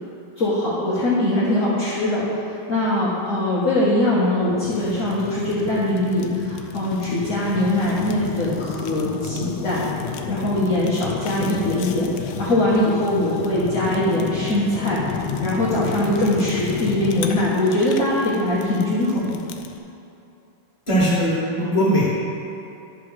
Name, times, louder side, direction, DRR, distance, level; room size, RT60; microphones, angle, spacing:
voice 1, 0.4-9.9 10.3-12.1 12.4-15.0 15.4-19.4, left 1 dB, 40° left, -8 dB, 1.7 m, -22 dB
Fire, 4.6-19.8, left 7 dB, 70° left, 1.2 m, -32 dB
voice 2, 20.9-22.1, equal, 15° left, -8 dB, 2.5 m, -19 dB
11.5 x 5.6 x 5.7 m, 2.8 s
omnidirectional pair, 2.3 m